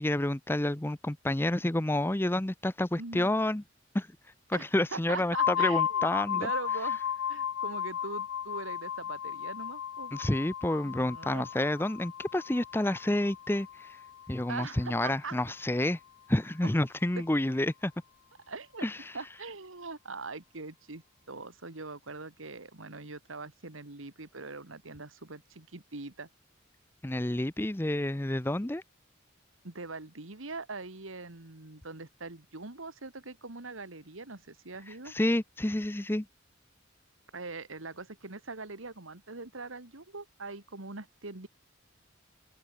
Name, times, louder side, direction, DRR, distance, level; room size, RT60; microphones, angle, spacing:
voice 1, 0.0-3.6 3.9-4.1 4.5-6.5 10.1-13.9 14.3-16.0 16.3-17.9 18.8-19.0 27.0-28.8 35.1-36.3, left 1 dB, 10° left, 0.6 m, -29 dB
voice 2, 3.0-3.3 4.5-6.1 6.3-10.2 10.8-11.5 14.5-15.4 16.6-16.7 17.2-17.3 18.5-18.9 19.1-26.3 29.6-35.1 37.3-41.5, right 3 dB, 90° right, 2.2 m, -42 dB
sound 1, 5.3-15.0, left 9 dB, 80° left, 0.4 m, -34 dB
open air
head